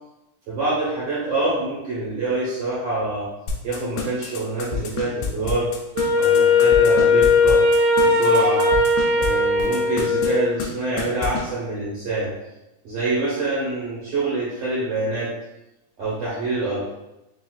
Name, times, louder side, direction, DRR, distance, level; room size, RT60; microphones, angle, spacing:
voice 1, 0.5-3.3 3.6-5.7 6.2-7.6 8.0-8.7 9.2-12.3 12.8-15.3 16.0-16.9, right 2 dB, 65° right, -9 dB, 1.4 m, -26 dB
sound 1, 3.5-9.3 9.6-10.3 10.6-10.7 11.0-11.4, left 7 dB, 85° left, 2.3 m, -29 dB
Wind instrument woodwind instrument, 6.0-10.6, left 3 dB, 90° right, 2.6 m, -18 dB
6.1 x 2.5 x 2.4 m, 0.94 s
omnidirectional pair, 4.0 m